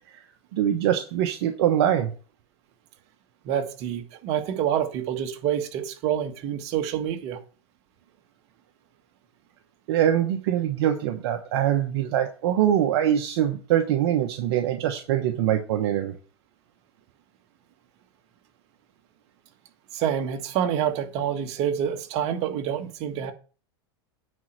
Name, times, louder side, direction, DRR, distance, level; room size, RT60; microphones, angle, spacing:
voice 1, 0.5-2.1 9.9-16.1, right 11 dB, 70° right, 1.1 m, -23 dB
voice 2, 3.4-7.4 19.9-23.3, right 9 dB, 50° right, 1.7 m, -27 dB
9.4 x 4.5 x 6.7 m
hypercardioid pair, 105°, 14 cm